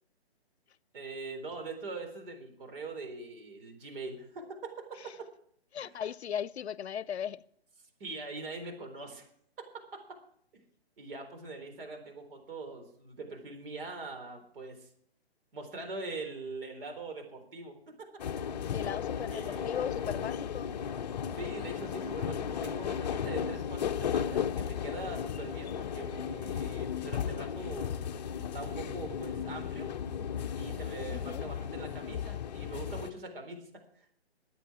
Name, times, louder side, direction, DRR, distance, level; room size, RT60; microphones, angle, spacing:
voice 1, 0.9-5.0 5.8-6.0 8.0-9.3 11.0-14.9 15.5-18.1 19.3-19.9 21.3-28.0 28.5-29.9 30.6-33.7 34.0-34.1, right 3 dB, 60° right, 4.0 m, -43 dB
voice 2, 5.7-7.4 18.7-20.7 31.1-31.4, left 8 dB, 85° left, 0.6 m, -37 dB
sound 1, 18.2-33.1, left 8 dB, 40° left, 0.7 m, -35 dB
22.5 x 9.1 x 4.9 m
hypercardioid pair, 150°, 32 cm